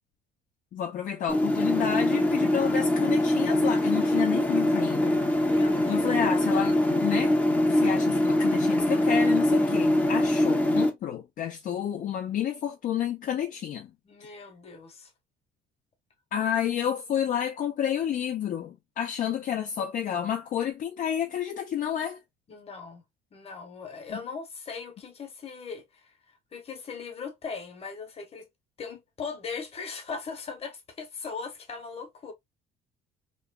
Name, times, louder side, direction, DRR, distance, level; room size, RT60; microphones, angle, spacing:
voice 1, 0.7-5.1 5.9-7.3 7.7-13.9 16.3-22.2 24.1-24.2, left 9 dB, 55° left, 0.5 m, -30 dB
sound 1, 1.3-10.9, left 1 dB, 10° left, 0.6 m, -23 dB
voice 2, 5.4-6.1 14.0-15.1 22.5-23.0 23.3-26.1 26.5-28.5 28.8-32.3, left 5 dB, 35° left, 1.0 m, -39 dB
3.0 x 2.2 x 2.2 m
cardioid pair, 110°, 17 cm